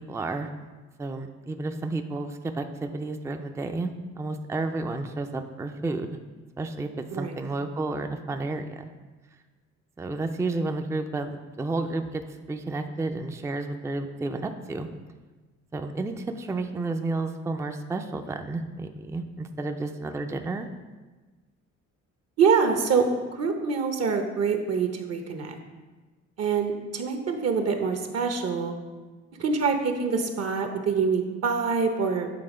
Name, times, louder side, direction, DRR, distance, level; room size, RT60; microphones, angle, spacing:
voice 1, 0.1-0.5 1.0-3.9 4.2-6.1 6.6-8.9 10.0-12.2 12.5-14.9 15.7-20.7, right 3 dB, 10° right, 6 dB, 0.4 m, -31 dB
voice 2, 22.4-25.5 26.4-28.7 29.4-32.3, right 5 dB, 55° right, 5 dB, 0.8 m, -25 dB
7.7 x 3.5 x 5.0 m, 1.3 s
cardioid pair, 90°, 30 cm